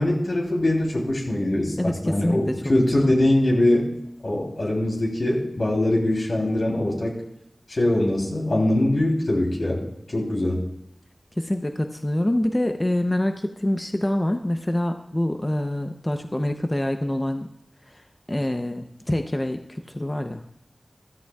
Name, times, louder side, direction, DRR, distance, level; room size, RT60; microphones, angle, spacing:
voice 1, 0.0-3.9 4.2-7.2 7.7-9.9 10.1-10.6, left 1 dB, 65° left, -3 dB, 3.2 m, -22 dB
voice 2, 1.8-3.1 11.4-17.5 17.9-20.4, left 1 dB, 25° left, 6 dB, 0.7 m, -26 dB
15.0 x 13.5 x 2.4 m, 0.78 s
wide cardioid pair, 55°, 0 cm